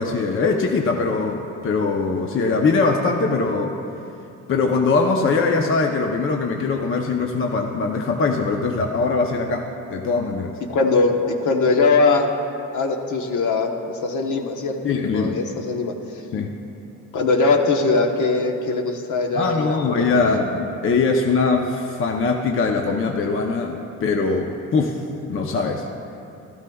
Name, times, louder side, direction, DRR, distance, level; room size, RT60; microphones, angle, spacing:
voice 1, 0.0-3.7 4.5-10.5 14.8-15.4 16.3-16.5 19.3-25.0 25.3-25.9, left 4 dB, 40° left, 2 dB, 0.7 m, -22 dB
voice 2, 10.7-12.3 12.7-14.8 15.1-15.9 17.1-20.4, left 3 dB, 60° left, 3 dB, 1.1 m, -21 dB
13.5 x 13.0 x 2.3 m, 2.7 s
cardioid pair, 115°, 34 cm